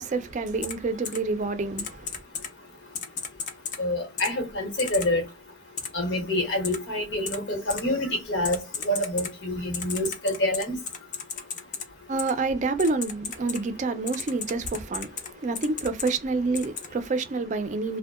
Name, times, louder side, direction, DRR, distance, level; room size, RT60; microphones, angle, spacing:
voice 1, 0.0-2.2 12.1-18.0, right 3 dB, 45° right, 0.4 m, -28 dB
Typing, 0.6-0.7 1.0-1.2 1.8-2.5 2.9-3.8 4.2-4.3 4.8-5.1 5.8-5.9 6.6-6.8 7.3-7.4 7.7-7.8 8.4-9.3 9.7-11.8 12.2-12.3 12.8-13.6 14.1-15.3 15.6-16.1 16.5-16.9, left 6 dB, 45° left, 0.5 m, -33 dB
voice 2, 3.8-5.2 5.9-10.8, left 1 dB, 80° left, 1.0 m, -27 dB
2.7 x 2.1 x 2.3 m
head